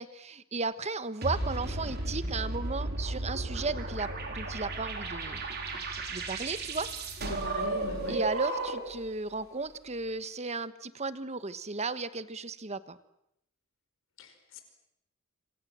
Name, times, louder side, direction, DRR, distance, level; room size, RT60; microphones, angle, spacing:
voice 1, 0.0-5.4 6.1-6.9 8.1-13.0, right 3 dB, 30° right, 14 dB, 1.2 m, -35 dB
sound 1, 1.2-9.0, right 2 dB, 50° right, 4.1 m, -34 dB
voice 2, 7.2-8.2 14.2-14.6, left 2 dB, 65° left, 7 dB, 5.1 m, -40 dB
26.5 x 26.5 x 7.6 m, 0.78 s
head